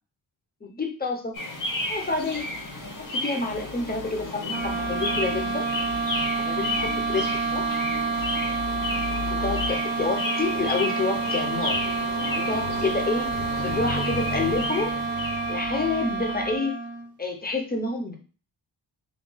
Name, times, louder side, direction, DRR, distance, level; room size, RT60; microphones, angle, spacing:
voice 1, 0.6-1.3 1.9-2.4 3.0-5.7 6.4-7.8 9.3-11.8 12.3-15.0 15.5-16.7 17.2-18.1, left 3 dB, 20° left, 2 dB, 0.6 m, -29 dB
sound 1, 1.3-16.6, left 2 dB, 45° left, 0.8 m, -32 dB
sound 2, 4.5-17.2, right 4 dB, 25° right, 0.5 m, -29 dB
3.5 x 2.3 x 3.8 m, 0.37 s
wide cardioid pair, 165°, 45 cm